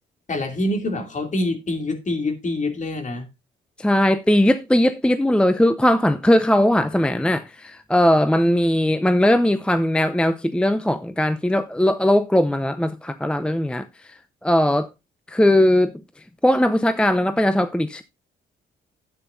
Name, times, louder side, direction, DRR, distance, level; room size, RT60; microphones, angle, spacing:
voice 1, 0.3-3.3, left 2 dB, 40° left, 2.8 m, -25 dB
voice 2, 3.8-14.9 15.3-15.9 16.4-18.0, left 1 dB, 5° left, 0.6 m, -19 dB
12.5 x 8.9 x 2.7 m
cardioid pair, 90°, 20 cm